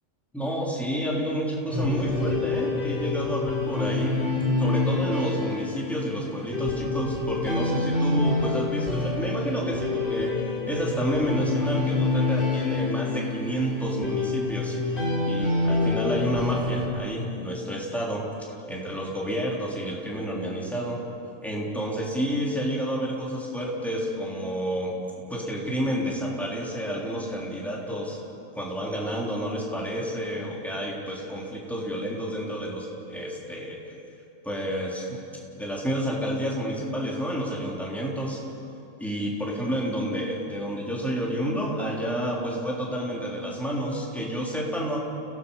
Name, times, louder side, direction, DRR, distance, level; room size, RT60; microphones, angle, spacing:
voice 1, 0.3-14.8 15.3-21.0 21.4-28.2 28.5-33.9 34.4-35.2 35.6-38.4 39.0-45.0, equal, ahead, -4 dB, 3.4 m, -30 dB
sound 1, 1.7-16.9, left 3 dB, 45° left, 4.9 m, -27 dB
30.0 x 17.5 x 5.5 m, 2.9 s
omnidirectional pair, 1.5 m